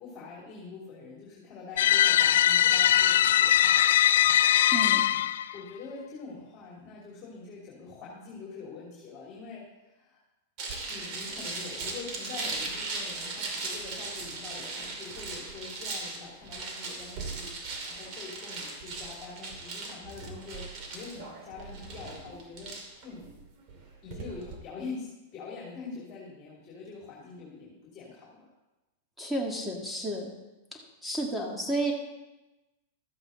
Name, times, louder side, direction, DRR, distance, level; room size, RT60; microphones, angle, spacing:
voice 1, 0.0-3.9 4.7-5.2 5.5-10.2 10.9-17.5 17.8-23.2 24.0-28.5, left 4 dB, 35° left, -4 dB, 2.8 m, -44 dB
sound 1, 1.8-5.5, left 12 dB, 75° left, 0.3 m, -21 dB
voice 2, 4.7-5.1 29.2-30.3 30.7-31.9, right 1 dB, ahead, 0 dB, 1.9 m, -32 dB
sound 2, 10.6-24.5, right 3 dB, 45° right, 2.6 m, -38 dB
13.5 x 7.8 x 4.0 m, 1.0 s
hypercardioid pair, 125°, 0 cm